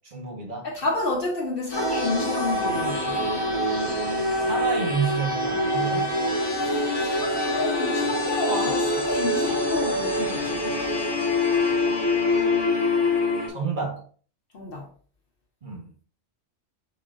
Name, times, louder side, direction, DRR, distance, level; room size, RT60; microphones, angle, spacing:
voice 1, 0.0-0.7 4.4-6.2 13.5-14.0 15.6-15.9, right 6 dB, 45° right, 1.1 m, -29 dB
voice 2, 0.6-3.2 6.6-10.8 14.5-14.9, left 2 dB, 55° left, 1.1 m, -30 dB
sound 1, 1.7-13.5, left 2 dB, 25° left, 1.1 m, -25 dB
4.9 x 4.0 x 2.5 m
omnidirectional pair, 1.2 m